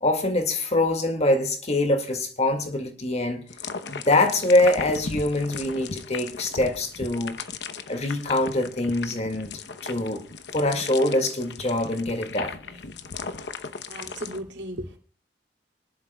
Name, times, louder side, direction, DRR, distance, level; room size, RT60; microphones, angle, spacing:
voice 1, 0.0-3.5 3.9-7.4 7.9-9.5 9.8-10.2 10.5-12.8, left 2 dB, 40° left, 2.1 m, -24 dB
sound 1, 3.5-14.4, left 4 dB, 70° left, 0.9 m, -37 dB
voice 2, 13.9-15.0, right 1 dB, 85° right, 2.8 m, -35 dB
25.5 x 11.5 x 2.3 m
head